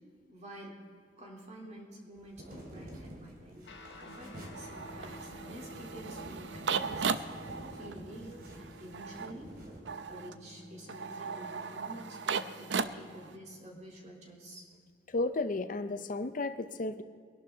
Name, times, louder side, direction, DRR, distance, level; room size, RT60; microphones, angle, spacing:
voice 1, 0.3-0.8 1.2-3.6 4.0-7.3 7.7-9.5 10.1-14.7, right 1 dB, 40° right, -2 dB, 3.4 m, -49 dB
sound 1, 2.2-9.8, equal, 55° right, 2.8 m, -49 dB
Guitar, 3.6-13.3, left 1 dB, 75° left, 1.7 m, -52 dB
sound 2, 4.5-13.4, right 5 dB, 80° right, 0.6 m, -37 dB
voice 2, 15.1-17.0, left 2 dB, 50° left, 11 dB, 0.6 m, -33 dB
22.5 x 11.5 x 3.9 m, 2.1 s
head